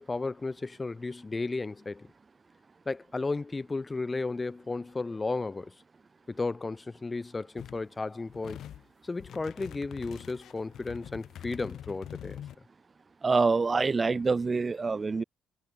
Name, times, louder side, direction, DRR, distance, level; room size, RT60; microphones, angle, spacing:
voice 1, 0.0-2.1 2.9-5.7 6.3-8.6 9.0-12.4, left 3 dB, 25° left, 2.0 m, -34 dB
sound 1, 7.6-7.8 8.3-8.9 9.2-12.6, left 11 dB, 70° left, 6.3 m, -45 dB
voice 2, 13.2-15.2, right 4 dB, 30° right, 0.8 m, -26 dB
cardioid pair, 90°, 0 cm